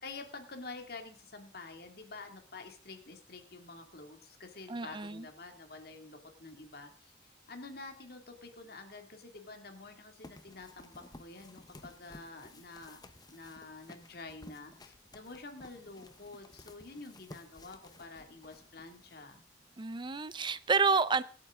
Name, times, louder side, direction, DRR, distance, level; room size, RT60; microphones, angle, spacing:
voice 1, 0.0-7.1 7.5-13.0 13.3-19.4, left 3 dB, 60° left, 2.4 m, -48 dB
voice 2, 4.7-5.3 19.8-21.2, right 4 dB, 30° right, 0.5 m, -29 dB
sound 1, 10.2-19.8, left 2 dB, 25° left, 0.9 m, -55 dB
25.0 x 9.1 x 3.7 m
head